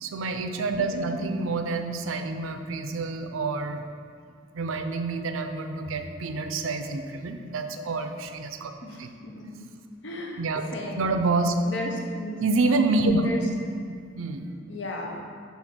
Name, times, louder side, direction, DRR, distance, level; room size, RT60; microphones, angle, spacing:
voice 1, 0.0-3.8 4.5-8.7 9.0-9.1 10.4-10.6 10.9-11.5 12.4-13.3 14.2-14.5, right 3 dB, 90° right, 7 dB, 0.5 m, -27 dB
voice 2, 0.9-1.3 8.8-9.7 10.0-10.4 10.7-11.1 11.6-12.4 13.2-13.4 14.7-15.2, left 1 dB, 60° left, 1 dB, 0.8 m, -35 dB
6.4 x 3.5 x 6.1 m, 2.2 s
head